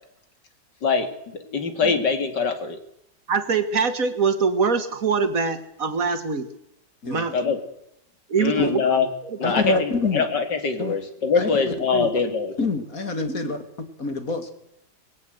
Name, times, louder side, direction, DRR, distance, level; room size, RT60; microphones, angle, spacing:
voice 1, 0.8-2.8 7.3-7.6 8.4-9.1 9.4-12.6, left 5 dB, 70° left, 8 dB, 3.1 m, -23 dB
voice 2, 3.3-6.5 7.0-7.4 8.3-8.8 9.5-9.6 13.3-13.5, right 5 dB, 50° right, 10 dB, 2.1 m, -23 dB
voice 3, 9.4-10.2 10.8-11.0 11.3-12.1 12.6-13.6 14.0-14.6, left 3 dB, 50° left, 8 dB, 2.8 m, -26 dB
21.0 x 17.0 x 8.0 m, 0.78 s
omnidirectional pair, 1.9 m